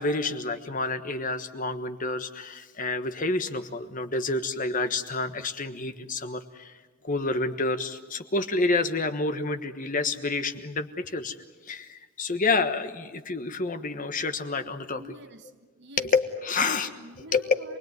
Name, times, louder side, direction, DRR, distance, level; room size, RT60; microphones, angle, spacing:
voice 1, 0.0-6.7 7.0-11.3 11.7-15.0 16.0-16.9 17.3-17.4, left 3 dB, 40° left, 1.3 m, -28 dB
voice 2, 14.9-16.1 16.6-17.8, right 2 dB, 55° right, 1.5 m, -47 dB
28.0 x 20.5 x 9.4 m
head